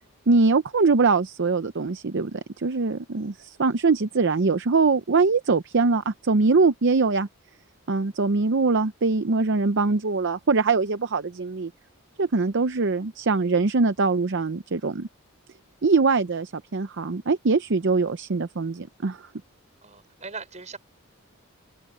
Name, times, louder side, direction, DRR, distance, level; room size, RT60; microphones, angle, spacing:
voice 1, 0.3-7.3 7.9-11.7 12.2-15.1 15.8-19.3, right 4 dB, 55° right, 0.6 m, -22 dB
voice 2, 19.8-20.8, right 4 dB, 30° right, 5.6 m, -39 dB
open air
head